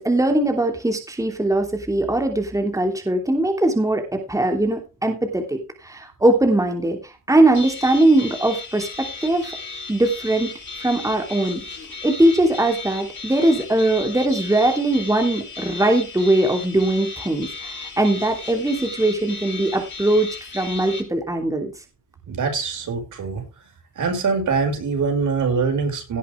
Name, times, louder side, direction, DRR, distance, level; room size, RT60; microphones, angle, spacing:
voice 1, 0.0-9.5 9.9-10.5 10.8-11.6 12.0-21.7, right 1 dB, 10° right, 4 dB, 3.1 m, -20 dB
sound 1, 7.5-21.0, left 3 dB, 35° left, 7.1 m, -35 dB
voice 2, 22.3-23.4 24.0-26.2, right 5 dB, 70° right, 5 dB, 6.0 m, -23 dB
17.5 x 8.3 x 3.4 m, 0.29 s
cardioid pair, 105°, 32 cm